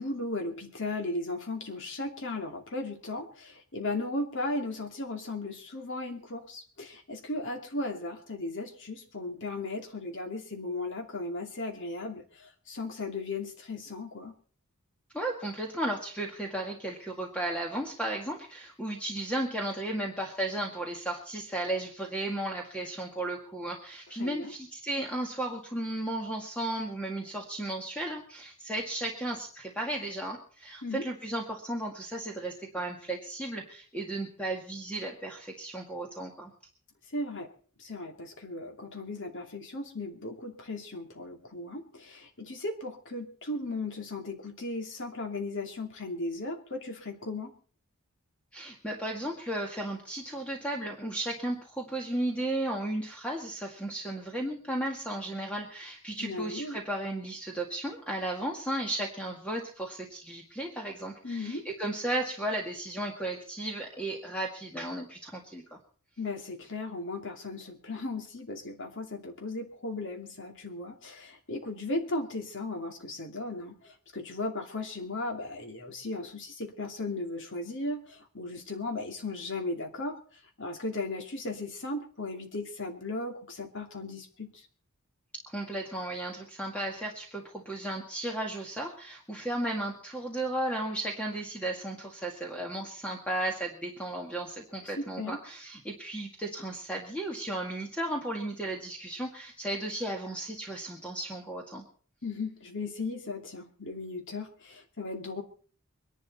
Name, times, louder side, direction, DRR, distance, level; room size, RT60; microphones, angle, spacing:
voice 1, 0.0-14.3 24.2-24.5 30.8-31.0 37.1-37.5 37.8-47.5 56.2-56.8 61.2-61.7 66.2-80.2 80.6-84.5 94.8-95.4 102.2-105.4, left 2 dB, 55° left, 3 dB, 2.7 m, -36 dB
voice 2, 15.1-36.5 48.5-65.8 85.5-101.8, right 1 dB, 5° left, 0 dB, 1.9 m, -34 dB
23.5 x 11.0 x 4.2 m, 0.42 s
head